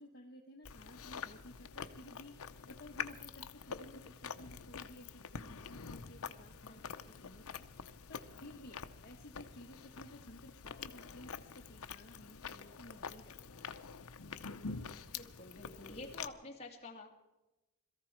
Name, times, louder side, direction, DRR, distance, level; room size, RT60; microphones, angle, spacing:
voice 1, 0.0-13.6, left 1 dB, 45° left, 1 dB, 1.2 m, -55 dB
Chewing mastication, 0.7-16.3, left 6 dB, 80° left, 0.7 m, -47 dB
voice 2, 15.1-17.1, left 2 dB, 30° left, 0 dB, 2.4 m, -49 dB
22.0 x 14.0 x 4.6 m, 1.1 s
head